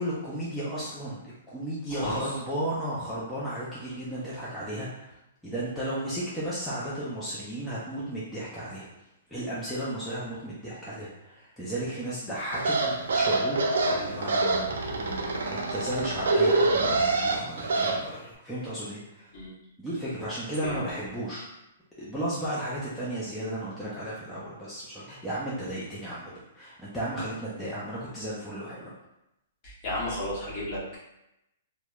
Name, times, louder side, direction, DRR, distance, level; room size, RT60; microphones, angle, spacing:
voice 1, 0.0-5.1 5.4-8.9 9.3-19.3 19.8-21.5 22.0-28.9, right 1 dB, 5° left, -10 dB, 0.4 m, -34 dB
voice 2, 1.9-2.4 19.3-19.5 20.6-20.8 29.6-31.0, left 1 dB, 35° left, -7 dB, 0.9 m, -33 dB
sound 1, 12.5-18.0, right 3 dB, 80° right, 0.4 m, -26 dB
2.7 x 2.0 x 2.3 m, 0.88 s
hypercardioid pair, 150°, 0 cm